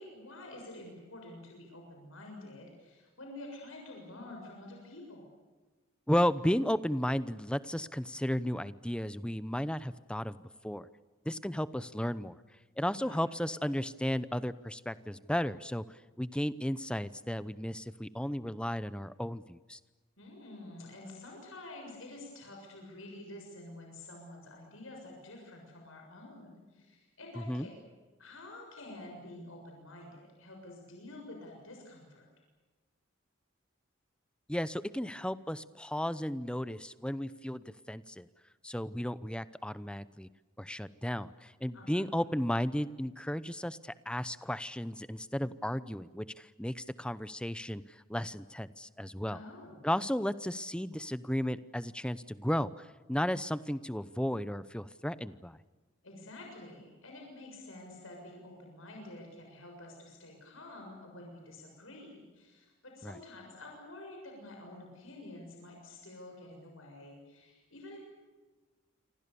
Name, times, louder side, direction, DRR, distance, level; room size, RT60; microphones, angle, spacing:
voice 1, 0.0-5.3 13.0-13.3 20.2-27.7 28.2-32.3 41.7-42.1 49.3-49.8 56.0-68.0, left 2 dB, 80° left, 1 dB, 6.9 m, -49 dB
voice 2, 6.1-10.4 10.6-10.9 11.2-12.4 12.8-15.8 16.2-19.8 27.4-27.7 34.5-38.3 38.6-40.3 40.6-47.8 48.1-49.4 49.8-55.6 63.0-63.2, equal, 5° left, 15 dB, 0.7 m, -34 dB
28.0 x 25.5 x 7.0 m, 1.3 s
head